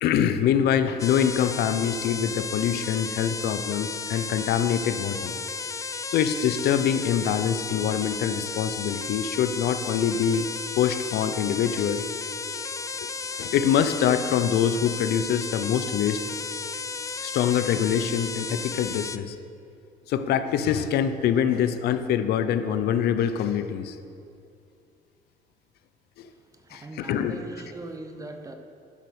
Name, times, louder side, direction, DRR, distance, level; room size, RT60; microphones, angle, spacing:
voice 1, 0.0-5.3 6.1-10.5 10.7-12.0 13.3-16.2 17.2-19.4 20.1-24.0 26.2-26.3 26.7-27.4, left 8 dB, 70° left, 10 dB, 0.6 m, -24 dB
sound 1, 1.0-19.2, left 5 dB, 20° left, 0.3 m, -34 dB
voice 2, 26.3-28.5, right 2 dB, 20° right, 6 dB, 0.9 m, -40 dB
11.0 x 5.6 x 6.4 m, 2.4 s
cardioid pair, 110°, 17 cm